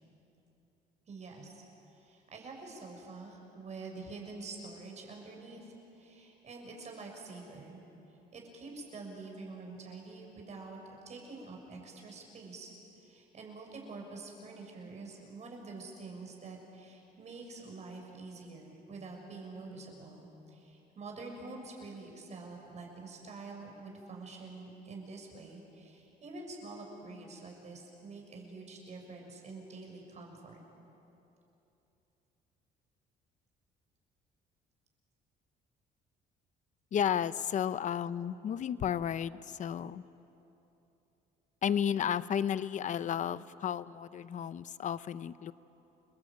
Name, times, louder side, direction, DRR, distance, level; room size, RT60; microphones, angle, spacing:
voice 1, 1.1-1.6 1.9-7.8 8.3-10.8 11.1-30.6, right 3 dB, 40° right, 1 dB, 7.1 m, -47 dB
voice 2, 36.9-40.0 41.6-45.5, left 9 dB, 45° left, 15 dB, 0.8 m, -33 dB
30.0 x 21.0 x 9.1 m, 3.0 s
cardioid pair, 110°, 17 cm